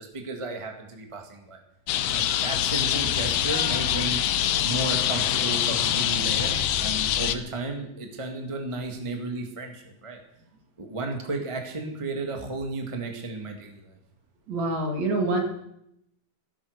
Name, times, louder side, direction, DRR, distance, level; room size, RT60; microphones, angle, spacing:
voice 1, 0.0-1.6 2.1-4.2 4.6-10.2 10.8-14.0, right 2 dB, 15° right, 3 dB, 1.3 m, -33 dB
sound 1, 1.9-7.3, left 10 dB, 80° left, 1.4 m, -25 dB
voice 2, 14.5-15.4, right 2 dB, 55° right, 3 dB, 3.2 m, -26 dB
15.5 x 12.5 x 6.7 m, 0.78 s
omnidirectional pair, 3.9 m